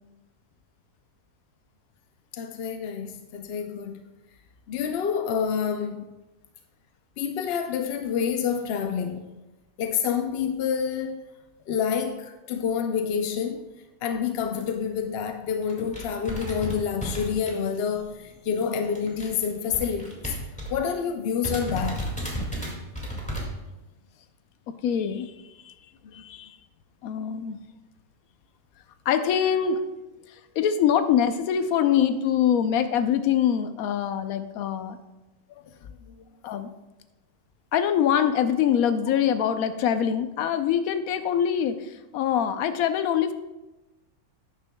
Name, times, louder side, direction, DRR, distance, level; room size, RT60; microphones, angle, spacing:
voice 1, 2.3-4.0 4.7-6.1 7.2-9.4 9.8-11.2 11.7-20.3 20.7-22.1 26.1-26.2 35.5-35.6 36.1-36.2, left 7 dB, 65° left, 0.6 m, -28 dB
sound 1, 14.6-14.8 15.3-15.4 15.6-18.0 18.2-20.9 21.2-21.3 21.4-23.4, right 1 dB, 5° left, 1.9 m, -33 dB
voice 2, 24.7-25.3 25.6-25.7 26.1-26.5 27.0-27.6 29.1-29.8 30.6-35.0 36.4-36.7 37.7-43.3, left 9 dB, 80° left, 1.1 m, -24 dB
12.0 x 9.1 x 2.2 m
omnidirectional pair, 1.5 m